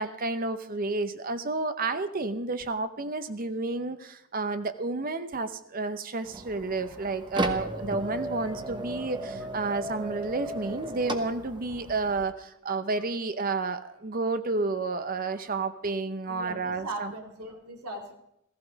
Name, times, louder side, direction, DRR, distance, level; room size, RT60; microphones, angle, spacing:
voice 1, 0.0-17.1, right 3 dB, 40° right, 11 dB, 0.7 m, -31 dB
sound 1, 6.2-12.2, right 1 dB, 20° right, 1.0 m, -35 dB
voice 2, 6.8-7.6 8.1-8.5 8.9-9.1 9.4-9.5 15.3-15.5 16.3-18.1, right 2 dB, 90° right, 2 dB, 2.6 m, -42 dB
15.5 x 15.0 x 5.1 m, 0.79 s
head